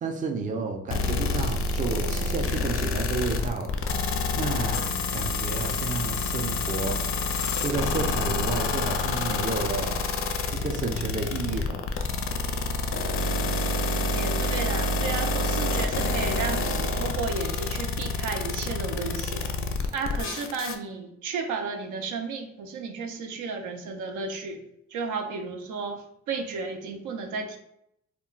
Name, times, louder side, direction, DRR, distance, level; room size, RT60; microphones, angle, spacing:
voice 1, 0.0-3.8 4.4-7.0 7.5-10.0 10.3-11.9, right 3 dB, 25° right, 4 dB, 0.4 m, -31 dB
sound 1, 0.9-20.8, left 3 dB, 45° left, 0.4 m, -27 dB
voice 2, 13.9-19.5 19.9-24.6 24.9-27.6, right 4 dB, 75° right, 5 dB, 0.5 m, -33 dB
2.2 x 2.2 x 3.8 m, 0.77 s
cardioid pair, 90°, 30 cm